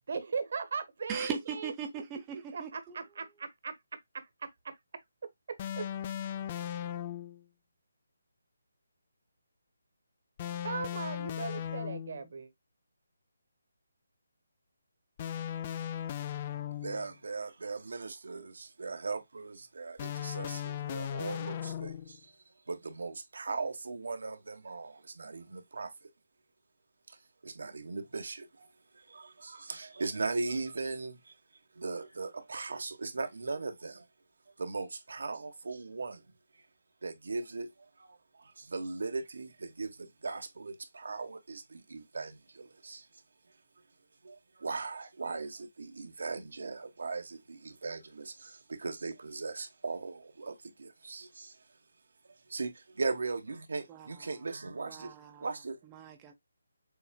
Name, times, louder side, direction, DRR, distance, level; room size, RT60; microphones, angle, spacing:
voice 1, 0.1-1.7 2.5-3.8 4.1-4.7 5.8-5.9 10.6-12.5, right 5 dB, 55° right, 1.2 m, -38 dB
voice 2, 1.1-3.0 53.9-54.3 54.9-55.5 55.9-56.3, right 7 dB, 15° right, 0.7 m, -40 dB
sound 1, 5.6-7.4 10.4-12.3 15.2-17.1 20.0-22.2, left 10 dB, 25° left, 0.4 m, -37 dB
voice 3, 16.8-22.3 22.7-25.9 27.1-27.2 27.4-28.7 28.9-31.4 31.7-34.0 34.6-36.2 37.0-37.7 38.0-43.1 44.2-51.6 52.5-55.8, right 3 dB, 75° right, 1.2 m, -38 dB
6.9 x 2.5 x 2.3 m
hypercardioid pair, 165°, 0 cm